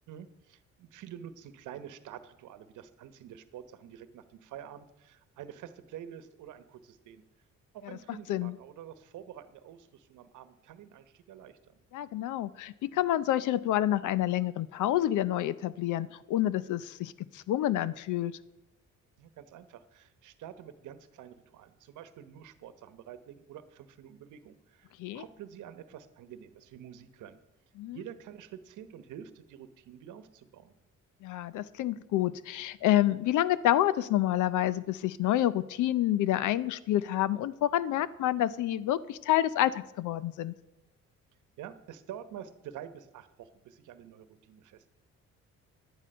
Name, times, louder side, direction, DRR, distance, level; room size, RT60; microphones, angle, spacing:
voice 1, 0.1-7.2 7.7-11.8 19.2-24.9 25.1-27.4 27.9-30.7 41.6-44.9, right 9 dB, 80° right, 12 dB, 1.0 m, -48 dB
voice 2, 11.9-18.3 25.0-25.2 27.8-28.0 31.2-40.5, left 13 dB, 80° left, 18 dB, 0.6 m, -28 dB
11.0 x 10.0 x 5.4 m, 0.91 s
cardioid pair, 90°, 30 cm